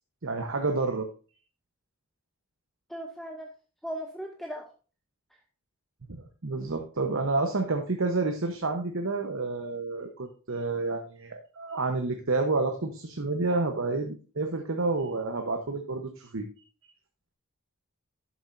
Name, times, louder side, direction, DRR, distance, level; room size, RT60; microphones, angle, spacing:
voice 1, 0.2-1.1 6.2-16.4, right 3 dB, 60° right, 4 dB, 1.0 m, -29 dB
voice 2, 2.9-3.5 3.8-4.7, equal, ahead, 2 dB, 0.8 m, -37 dB
12.0 x 7.1 x 2.6 m, 0.36 s
head